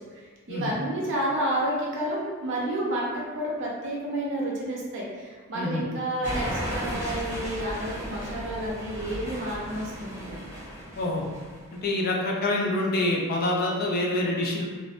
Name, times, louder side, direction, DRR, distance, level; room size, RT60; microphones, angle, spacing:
voice 1, 0.5-10.4, right 1 dB, 55° right, -4 dB, 0.6 m, -30 dB
sound 1, 6.2-11.8, equal, 15° right, 0.5 m, -35 dB
voice 2, 11.0-11.3 11.8-14.7, left 1 dB, 45° left, -1 dB, 0.4 m, -26 dB
2.5 x 2.1 x 2.4 m, 1.4 s
head